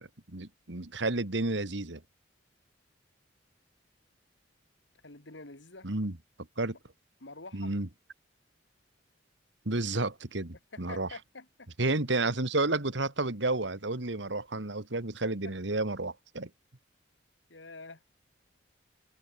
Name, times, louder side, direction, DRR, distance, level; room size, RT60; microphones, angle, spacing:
voice 1, 0.0-2.0 5.8-6.2 6.6-6.8 7.5-7.9 9.7-11.1 11.8-16.5, right 2 dB, 70° right, 2.1 m, -31 dB
voice 2, 5.0-5.9 7.2-7.7 10.7-11.7 17.5-18.0, left 3 dB, 75° left, 3.0 m, -47 dB
head